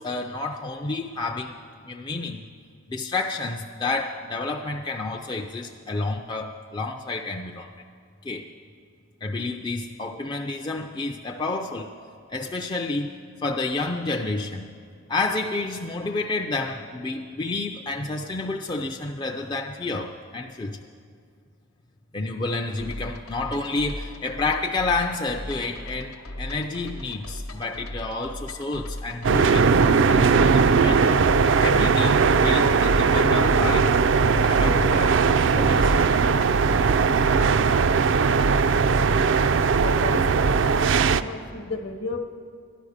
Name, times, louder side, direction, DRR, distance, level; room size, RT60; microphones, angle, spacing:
voice 1, 0.0-1.6 1.8-2.4 2.9-7.7 8.2-8.4 9.2-11.9 12.3-13.1 13.4-14.7 15.1-20.8 22.1-31.3 31.6-34.0 34.4-35.2 35.5-36.0, left 3 dB, 20° left, 2 dB, 0.4 m, -29 dB
sound 1, 22.8-38.6, left 1 dB, 90° left, 1.0 m, -38 dB
sound 2, 29.2-41.2, right 5 dB, 60° right, 0.4 m, -19 dB
voice 2, 39.8-40.5 41.0-42.2, left 3 dB, 60° left, 7 dB, 1.0 m, -33 dB
13.5 x 11.0 x 6.5 m, 2.2 s
head